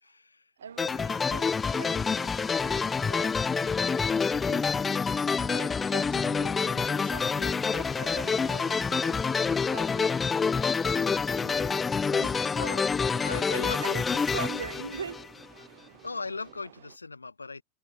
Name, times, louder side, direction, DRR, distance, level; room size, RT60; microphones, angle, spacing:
voice 1, 0.0-0.5 12.6-14.0 16.0-17.6, left 3 dB, 80° left, 1.0 m, -38 dB
sound 1, 0.6-17.0, right 16 dB, 55° right, 2.2 m, -55 dB
voice 2, 0.6-4.7 5.4-9.3 9.7-11.8 12.1-12.4 13.1-15.3, right 6 dB, 70° right, 1.1 m, -43 dB
sound 2, 0.8-15.6, left 5 dB, 15° left, 0.6 m, -27 dB
figure-of-eight pair, 90°, 0 cm